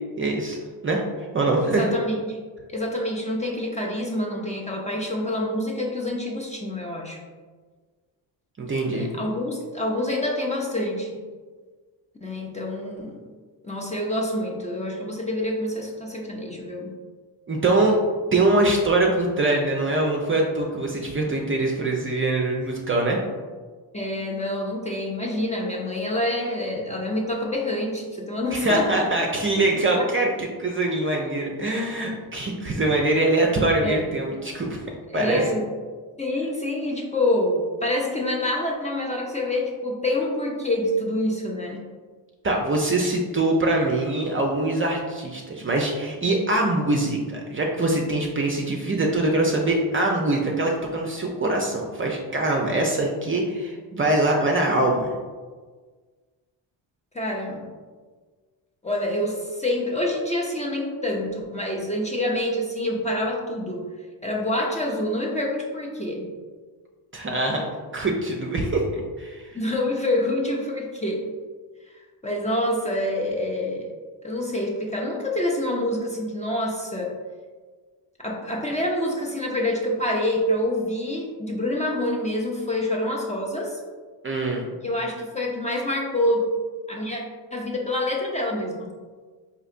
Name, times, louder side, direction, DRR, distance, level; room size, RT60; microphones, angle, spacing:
voice 1, 0.2-0.6 0.8-1.9 8.6-9.1 17.5-18.0 18.3-23.2 28.5-34.8 35.1-35.4 42.4-55.1 67.1-67.6 67.9-69.6 84.2-84.7, right 2 dB, 25° right, 0 dB, 0.5 m, -23 dB
voice 2, 1.6-2.4 2.7-7.2 8.8-11.2 12.2-13.2 13.6-17.0 23.9-29.0 30.0-30.1 33.8-34.0 35.1-35.7 36.2-41.9 57.1-57.7 58.8-63.9 64.2-66.3 69.5-71.3 72.2-73.9 74.2-77.2 78.2-83.8 84.8-86.5 86.9-87.2 87.5-88.9, left 1 dB, 15° left, -2 dB, 0.6 m, -27 dB
4.1 x 2.8 x 2.5 m, 1.5 s
supercardioid pair, 60°, 48 cm